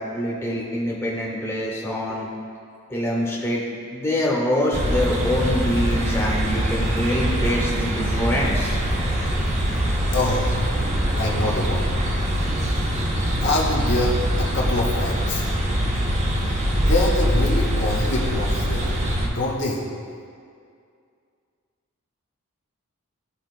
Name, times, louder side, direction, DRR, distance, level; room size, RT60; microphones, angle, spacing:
voice 1, 0.0-2.3 2.9-3.6 3.9-8.8, left 1 dB, 10° left, -5 dB, 1.0 m, -25 dB
sound 1, 4.7-19.3, equal, 30° right, 0.6 m, -23 dB
voice 2, 10.1-10.6 11.2-11.9 13.4-15.4 16.8-18.9 19.2-19.8, left 2 dB, 50° left, -4 dB, 0.9 m, -25 dB
13.0 x 4.4 x 2.4 m, 2.3 s
head